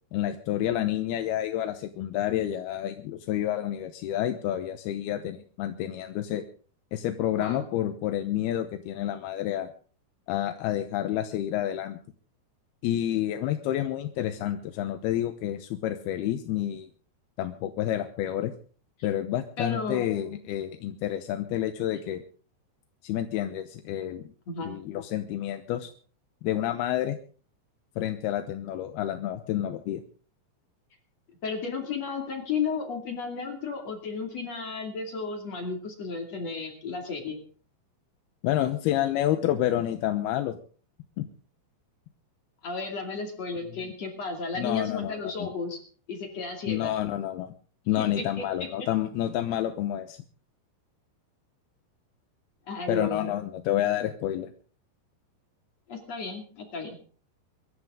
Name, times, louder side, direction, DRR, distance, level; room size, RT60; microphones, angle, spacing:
voice 1, 0.1-6.4 6.9-9.7 10.3-12.0 12.8-16.9 17.4-18.5 19.0-22.2 23.0-24.3 24.6-25.9 26.4-27.2 28.0-30.0 38.4-40.6 41.2-41.3 43.8-43.9 44.6-45.5 46.7-47.5 47.9-50.2 52.9-54.5, left 12 dB, 75° left, 8 dB, 2.7 m, -29 dB
voice 2, 19.6-20.0 24.5-24.7 31.4-37.4 42.6-45.8 46.1-46.9 48.0-48.7 52.7-53.3 55.9-57.0, left 4 dB, 45° left, 3 dB, 3.2 m, -33 dB
24.0 x 13.5 x 3.7 m, 0.41 s
omnidirectional pair, 5.0 m